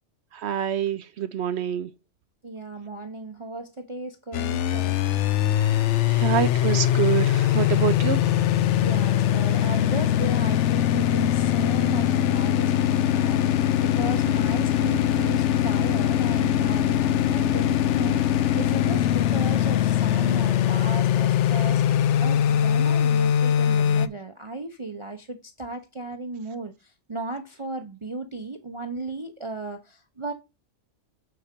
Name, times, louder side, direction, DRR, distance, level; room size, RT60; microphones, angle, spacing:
voice 1, 0.3-1.9 6.1-8.4, right 9 dB, 65° right, 0.8 m, -26 dB
voice 2, 2.4-5.0 8.7-30.3, right 2 dB, 30° right, 0.6 m, -36 dB
sound 1, 4.3-24.1, left 10 dB, 70° left, 0.9 m, -22 dB
7.7 x 4.3 x 5.1 m
omnidirectional pair, 1.3 m